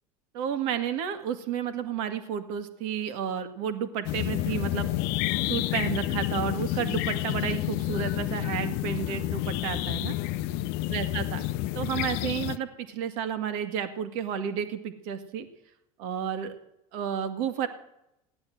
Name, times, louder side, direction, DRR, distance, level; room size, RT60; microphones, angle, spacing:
voice 1, 0.3-4.9 5.5-10.2 10.9-11.5 11.7-15.5 16.0-16.6 16.9-17.7, right 8 dB, 65° right, 9 dB, 1.9 m, -31 dB
sound 1, 4.0-12.6, left 16 dB, 60° left, 0.7 m, -29 dB
16.0 x 10.5 x 7.8 m, 0.86 s
hypercardioid pair, 80°, 19 cm